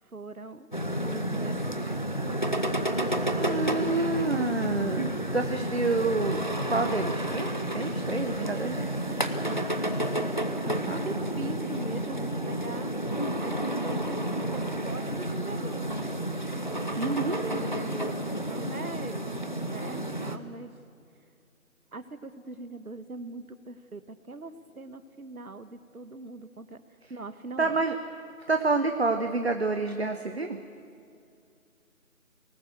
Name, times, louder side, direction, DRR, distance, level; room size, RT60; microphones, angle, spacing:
voice 1, 0.0-0.7 1.0-1.9 2.2-2.4 9.1-9.2 9.5-10.1 10.6-12.9 13.4-16.2 17.1-17.2 17.4-20.7 21.9-26.8 27.1-27.9, right 3 dB, 80° right, 11 dB, 1.5 m, -41 dB
sound 1, 0.7-20.4, right 1 dB, 35° left, 0.7 m, -30 dB
voice 2, 3.4-6.4 6.7-8.9 10.7-11.3 17.0-17.4 27.0-27.1 27.6-28.0 28.5-30.6, right 3 dB, 45° right, 5 dB, 1.0 m, -28 dB
23.5 x 19.0 x 8.0 m, 2.5 s
figure-of-eight pair, 175°, 43 cm